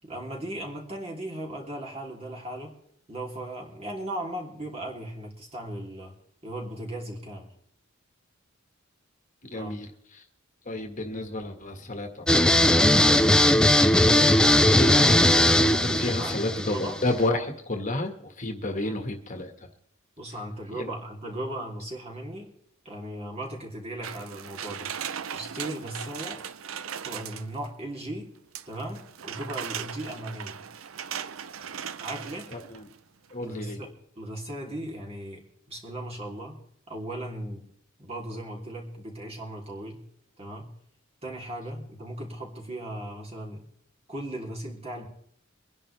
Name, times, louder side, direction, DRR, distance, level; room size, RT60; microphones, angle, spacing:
voice 1, 0.0-2.7 3.1-6.1 6.4-7.5 9.5-9.8 15.9-17.0 18.8-19.0 20.2-22.5 22.8-24.9 25.3-26.4 27.0-28.3 28.7-30.6 31.6-31.7 32.0-32.5 33.4-36.6 36.9-37.7 38.0-40.0 40.4-40.7 41.2-43.6 44.1-45.1, right 1 dB, 30° right, -1 dB, 3.2 m, -37 dB
voice 2, 9.4-10.2 10.6-13.2 14.0-19.5 20.8-20.9 32.5-32.9 33.3-33.8, left 2 dB, 40° left, 4 dB, 1.6 m, -32 dB
sound 1, 12.3-17.2, left 1 dB, 5° left, 0.5 m, -19 dB
sound 2, 24.0-27.7 28.6-33.0 33.3-33.4, right 8 dB, 85° right, 0.7 m, -38 dB
24.0 x 10.5 x 3.3 m, 0.69 s
head